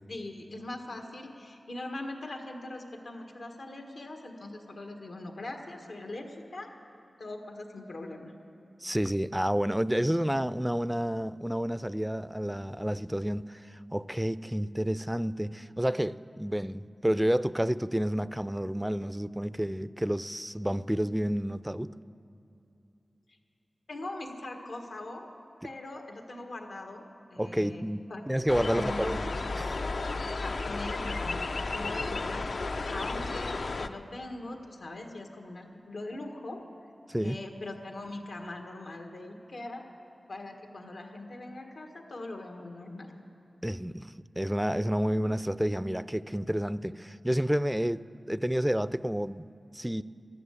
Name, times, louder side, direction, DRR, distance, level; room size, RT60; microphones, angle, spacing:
voice 1, 0.1-6.7 7.2-8.3 23.9-25.3 25.6-28.2 28.5-29.1 30.2-32.6 32.9-36.6 37.2-39.9 40.3-43.1, left 2 dB, 85° left, 1.5 m, -41 dB
voice 2, 8.8-21.9 27.4-29.2 29.6-29.7 37.1-37.4 43.6-49.5 49.7-50.0, equal, 5° right, 0.3 m, -30 dB
sound 1, 28.5-33.9, left 3 dB, 70° left, 0.5 m, -33 dB
14.0 x 10.5 x 8.2 m
wide cardioid pair, 60°, 0 cm